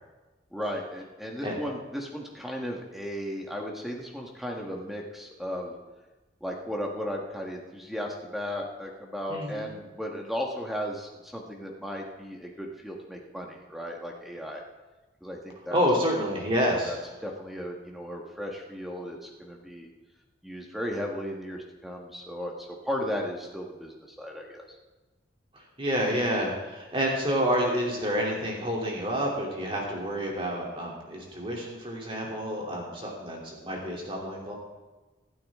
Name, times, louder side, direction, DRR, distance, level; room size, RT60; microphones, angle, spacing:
voice 1, 0.5-5.7 6.4-14.6 15.2-16.1 16.6-17.0 17.2-19.9 20.4-24.6, equal, ahead, 0 dB, 1.5 m, -35 dB
voice 2, 9.3-9.7 15.7-17.0 25.5-34.5, equal, 25° right, -2 dB, 3.1 m, -29 dB
26.0 x 9.0 x 3.7 m, 1.2 s
head